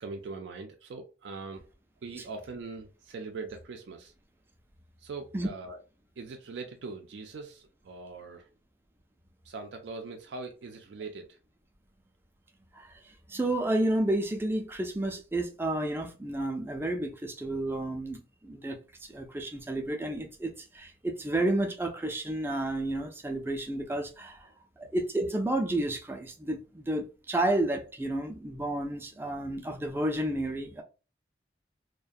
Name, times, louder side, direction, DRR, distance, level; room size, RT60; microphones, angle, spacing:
voice 1, 0.0-1.7 2.0-4.1 5.0-5.8 6.2-8.5 9.4-11.4 24.8-24.9, right 4 dB, 85° right, 0.4 m, -41 dB
voice 2, 12.7-24.5 24.8-30.8, right 1 dB, 15° right, 0.3 m, -31 dB
2.4 x 2.1 x 2.5 m
head